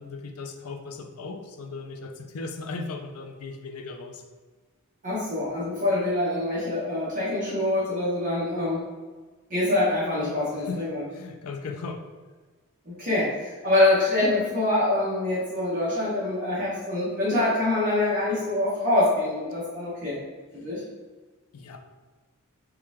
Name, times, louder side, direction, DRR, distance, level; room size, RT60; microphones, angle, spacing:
voice 1, 0.0-4.2 10.5-10.8 11.1-12.0 21.5-21.8, left 3 dB, 70° left, 4 dB, 0.5 m, -37 dB
voice 2, 5.0-8.8 9.5-11.0 12.9-20.2 20.5-20.8, left 2 dB, 35° right, -8 dB, 1.1 m, -25 dB
4.7 x 2.4 x 3.5 m, 1.3 s
head